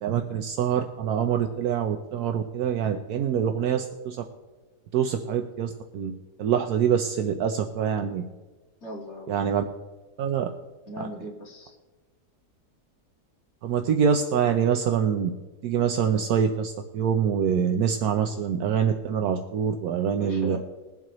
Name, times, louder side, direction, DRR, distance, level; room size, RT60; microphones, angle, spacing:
voice 1, 0.0-4.2 4.9-6.1 6.4-8.3 9.3-9.6 10.2-10.5 11.0-11.1 13.6-15.3 15.6-20.6, right 8 dB, 75° right, 5 dB, 1.2 m, -25 dB
voice 2, 8.8-9.5 10.9-11.8 20.1-20.6, equal, 45° left, -2 dB, 2.1 m, -38 dB
21.5 x 7.6 x 3.0 m, 1.3 s
omnidirectional pair, 1.7 m